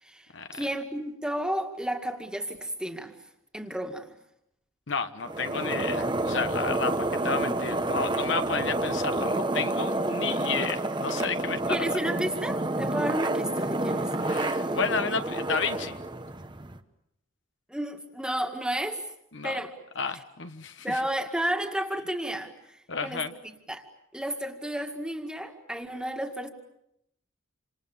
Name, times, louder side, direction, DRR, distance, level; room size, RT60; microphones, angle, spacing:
voice 1, 0.0-3.1 3.5-4.1 11.7-14.2 17.7-19.0 19.4-19.7 20.8-23.9 24.1-26.5, right 1 dB, 5° right, 4 dB, 2.1 m, -32 dB
voice 2, 4.9-11.9 14.2-16.0 19.3-19.6 20.0-21.0 22.9-23.3, left 5 dB, 60° left, 8 dB, 1.3 m, -32 dB
sound 1, 5.2-16.8, right 2 dB, 20° right, 1.1 m, -29 dB
28.5 x 27.0 x 7.2 m, 0.79 s
head